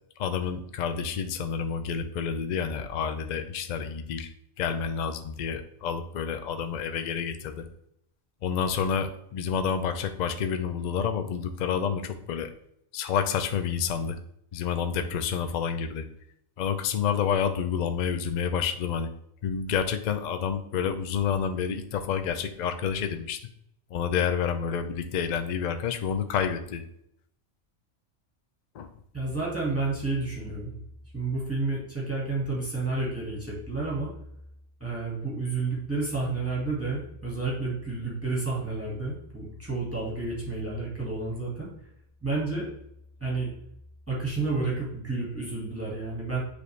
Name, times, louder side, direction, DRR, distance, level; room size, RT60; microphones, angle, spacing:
voice 1, 0.2-4.3 4.6-7.7 8.4-12.5 12.9-14.2 14.5-16.1 16.6-19.1 19.4-23.4 23.9-26.8 28.8-28.9, left 7 dB, 55° left, 9 dB, 0.5 m, -29 dB
voice 2, 29.1-30.7 31.1-34.1 34.8-41.7 42.2-42.7 43.2-43.5 44.1-46.4, right 3 dB, 10° right, -5 dB, 1.7 m, -30 dB
9.1 x 3.2 x 3.2 m, 0.75 s
omnidirectional pair, 1.3 m